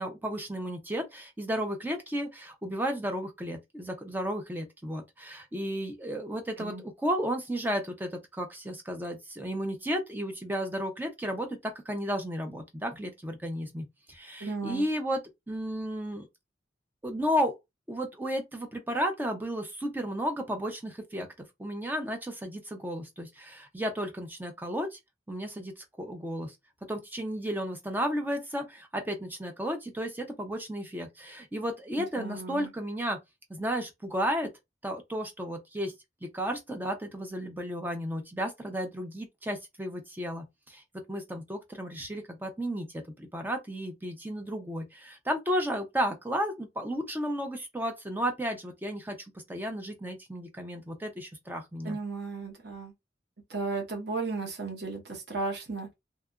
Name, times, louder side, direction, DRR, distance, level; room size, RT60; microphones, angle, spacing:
voice 1, 0.0-15.2 15.5-16.3 17.0-17.6 17.9-25.0 25.3-26.6 26.9-33.2 33.5-34.5 34.8-35.9 36.2-40.8 41.1-52.0, equal, 10° right, 0.4 m, -33 dB
voice 2, 14.4-14.8 32.2-32.7 51.8-52.9 53.5-55.9, right 3 dB, 60° right, 0.9 m, -35 dB
2.8 x 2.3 x 2.3 m
head